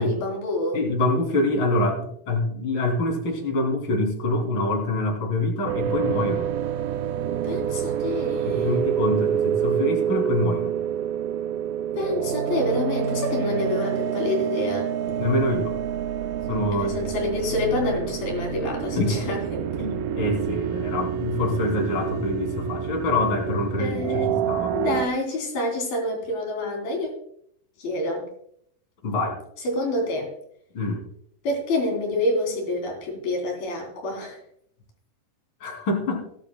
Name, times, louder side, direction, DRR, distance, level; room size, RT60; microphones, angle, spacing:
voice 1, 0.0-0.8 7.4-8.8 11.9-14.9 16.8-19.9 23.8-24.3 24.7-27.1 27.8-28.3 29.6-30.3 31.4-34.4, left 1 dB, 80° left, 1 dB, 5.0 m, -27 dB
voice 2, 0.7-6.5 8.5-10.7 15.2-15.7 16.5-17.0 18.9-19.2 19.8-24.7 29.0-29.4 30.7-31.0 35.6-36.2, left 2 dB, 35° left, 2 dB, 3.1 m, -25 dB
sound 1, 5.6-25.1, right 9 dB, 80° right, 2.4 m, -27 dB
18.5 x 11.0 x 2.2 m, 0.68 s
omnidirectional pair, 4.2 m